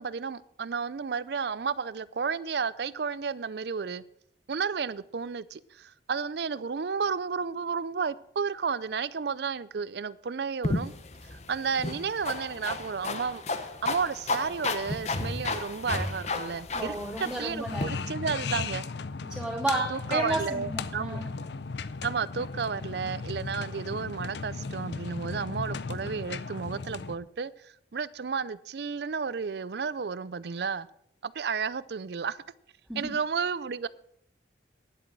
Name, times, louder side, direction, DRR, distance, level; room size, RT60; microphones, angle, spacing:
voice 1, 0.0-4.0 4.5-10.9 11.3-13.4 13.8-18.8 19.9-21.2 22.0-30.9 31.2-32.4 33.0-33.9, right 5 dB, 65° right, 0.5 m, -32 dB
sound 1, 10.6-17.9, left 3 dB, 35° left, 0.9 m, -33 dB
voice 2, 16.7-17.9 19.3-21.3 32.9-33.0, right 1 dB, 5° right, 3.0 m, -32 dB
sound 2, 17.7-27.2, left 4 dB, 70° left, 0.6 m, -36 dB
10.5 x 7.8 x 7.4 m
head